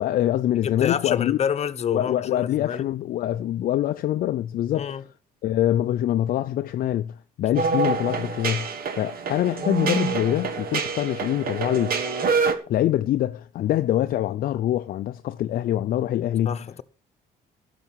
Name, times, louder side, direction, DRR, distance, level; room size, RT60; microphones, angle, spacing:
voice 1, 0.0-1.4 1.9-5.0 5.4-8.7 8.9-12.0 12.7-16.7, left 12 dB, 60° left, 0.5 m, -24 dB
voice 2, 0.6-2.8 4.7-5.0 16.5-16.8, left 8 dB, 40° left, 1.0 m, -28 dB
sound 1, 7.5-12.5, right 5 dB, 60° right, 1.9 m, -26 dB
12.5 x 6.9 x 7.3 m
cardioid pair, 110°, 17 cm